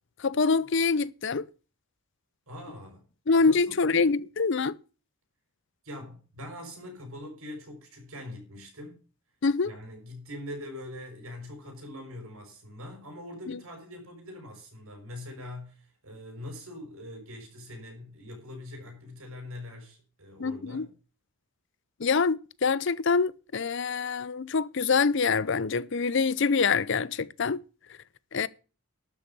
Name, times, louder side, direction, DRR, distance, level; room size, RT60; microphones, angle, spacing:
voice 1, 0.2-1.4 3.3-4.8 9.4-9.7 20.4-20.8 22.0-27.6 28.3-28.5, left 4 dB, 55° left, 0.5 m, -25 dB
voice 2, 2.5-3.0 3.4-4.1 5.8-9.0 9.6-20.9, left 1 dB, 75° right, 5.7 m, -43 dB
12.5 x 6.7 x 6.8 m
head